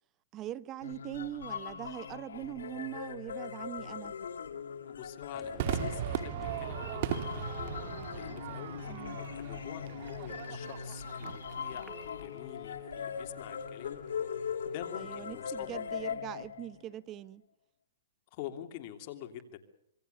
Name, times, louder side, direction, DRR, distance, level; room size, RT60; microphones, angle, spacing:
voice 1, 0.3-4.1 8.9-9.2 15.0-17.4, right 13 dB, 25° right, 0.9 m, -42 dB
sound 1, 0.8-16.9, left 7 dB, 90° left, 2.0 m, -40 dB
voice 2, 4.8-7.8 8.1-15.8 18.3-19.6, left 11 dB, 40° left, 3.0 m, -47 dB
sound 2, 5.3-16.2, left 3 dB, 5° right, 2.8 m, -53 dB
Crowd / Fireworks, 5.6-12.1, right 10 dB, 45° right, 1.6 m, -38 dB
26.0 x 22.5 x 6.9 m
hypercardioid pair, 155°, 0 cm